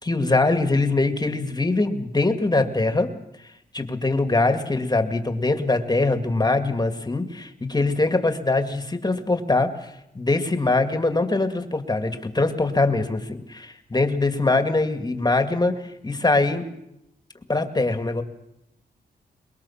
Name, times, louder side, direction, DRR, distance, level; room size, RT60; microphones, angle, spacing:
voice 1, 0.0-3.1 3.7-16.6 17.5-18.2, left 2 dB, 20° left, 7 dB, 2.2 m, -23 dB
23.5 x 21.0 x 7.3 m, 0.83 s
cardioid pair, 85°, 18 cm